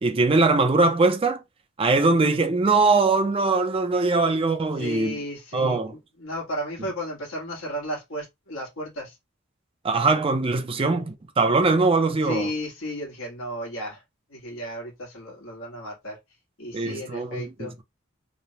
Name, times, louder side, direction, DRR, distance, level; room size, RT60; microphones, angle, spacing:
voice 1, 0.0-1.4 1.8-5.2 5.5-5.9 9.8-12.5 16.7-17.7, right 3 dB, 30° right, 0.4 m, -21 dB
voice 2, 4.8-9.2 10.7-10.9 12.2-14.0 14.3-16.2 16.6-17.7, equal, 85° left, 1.3 m, -34 dB
3.1 x 2.1 x 2.7 m
head